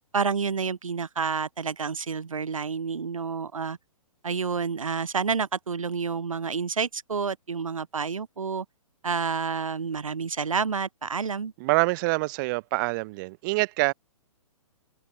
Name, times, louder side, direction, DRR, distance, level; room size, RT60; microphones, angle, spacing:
voice 1, 0.1-3.8 4.2-8.6 9.0-11.5, right 5 dB, 70° right, 3.2 m, -29 dB
voice 2, 11.6-13.9, right 24 dB, 35° right, 3.1 m, -25 dB
open air
figure-of-eight pair, 120°, 18 cm